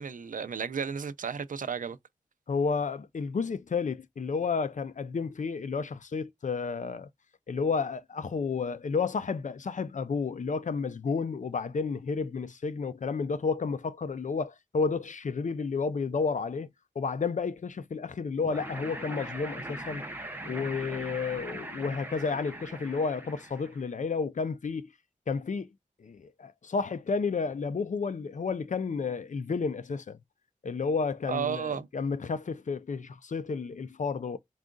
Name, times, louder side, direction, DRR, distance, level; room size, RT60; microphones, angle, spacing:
voice 1, 0.0-2.0 31.3-31.9, right 7 dB, 70° right, 0.5 m, -33 dB
voice 2, 2.5-7.1 7.5-16.7 17.0-20.0 20.4-24.9 25.3-25.7 26.0-30.2 30.6-34.4, left 5 dB, 65° left, 0.5 m, -31 dB
sound 1, 18.4-23.9, right 1 dB, 15° right, 0.9 m, -41 dB
3.7 x 2.4 x 3.7 m
wide cardioid pair, 65°, 14 cm